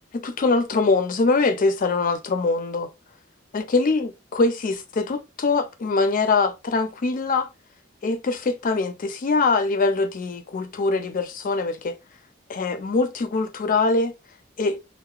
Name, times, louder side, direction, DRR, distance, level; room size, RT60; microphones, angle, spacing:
voice 1, 0.1-2.9 3.5-7.5 8.0-12.0 12.5-14.1 14.6-14.8, left 3 dB, 45° left, 0.4 m, -23 dB
2.8 x 2.1 x 2.3 m
head